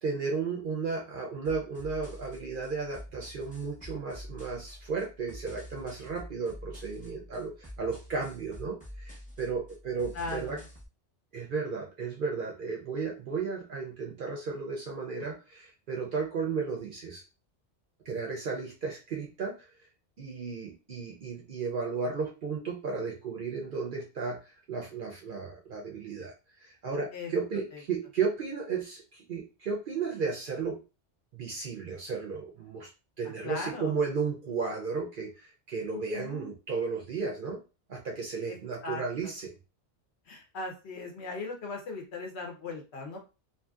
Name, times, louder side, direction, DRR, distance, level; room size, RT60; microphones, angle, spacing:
voice 1, 0.0-10.6 11.3-17.2 18.1-19.7 20.2-26.3 26.6-30.8 31.3-32.9 33.2-37.6 37.9-39.5, right 5 dB, 60° right, 0 dB, 0.6 m, -34 dB
sound 1, 1.4-10.9, equal, 10° left, 0.7 m, -47 dB
voice 2, 10.1-10.7 27.1-27.3 27.7-27.8 33.4-34.0 35.9-36.5 38.5-38.6 38.8-39.3 40.2-43.2, left 3 dB, 65° left, 1 dB, 1.0 m, -38 dB
2.7 x 2.6 x 2.3 m, 0.31 s
omnidirectional pair, 1.2 m